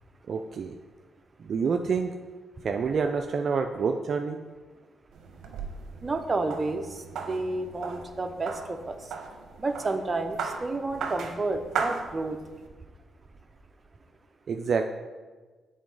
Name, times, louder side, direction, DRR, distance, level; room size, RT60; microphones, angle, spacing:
voice 1, 0.3-0.7 1.5-2.1 2.6-4.4 14.5-14.8, right 5 dB, 60° right, 5 dB, 0.4 m, -27 dB
sound 1, 5.1-12.7, right 5 dB, 75° right, 0.8 m, -37 dB
voice 2, 6.0-6.8 7.3-8.9 9.6-12.4, right 3 dB, 30° right, 6 dB, 0.7 m, -30 dB
7.4 x 3.8 x 4.8 m, 1.3 s
cardioid pair, 75°, 0 cm